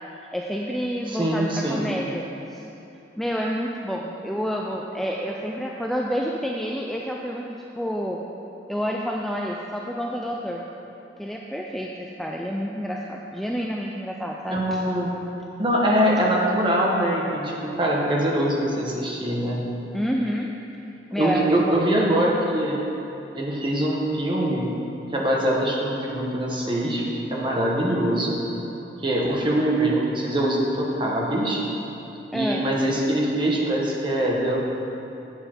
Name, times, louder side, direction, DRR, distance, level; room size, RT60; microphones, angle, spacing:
voice 1, 0.3-2.3 2.5-2.6 3.2-8.2 8.7-10.6 11.2-14.6 19.9-20.5 21.1-21.8 32.3-32.7, equal, ahead, -1 dB, 0.3 m, -28 dB
voice 2, 1.1-1.9 14.5-15.1 15.6-19.6 21.2-22.8 23.3-24.7 25.1-28.4 29.0-31.6 32.3-34.6, right 1 dB, 25° right, -3 dB, 1.1 m, -23 dB
8.8 x 6.8 x 4.4 m, 3.0 s
head